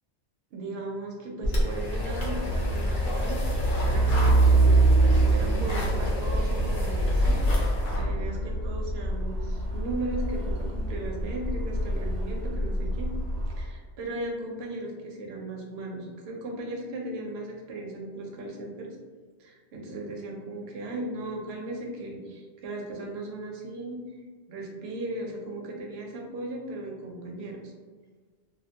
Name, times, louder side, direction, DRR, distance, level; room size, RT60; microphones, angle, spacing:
voice 1, 0.5-4.6 5.2-13.1 13.5-19.0 19.4-24.2 24.5-27.7, right 2 dB, 70° right, 0 dB, 0.8 m, -37 dB
sound 1, 1.4-8.1, left 1 dB, 55° left, 0.7 m, -28 dB
Truck, 2.6-13.7, right 2 dB, 35° right, 0.9 m, -25 dB
2.3 x 2.1 x 2.7 m, 1.5 s
omnidirectional pair, 1.2 m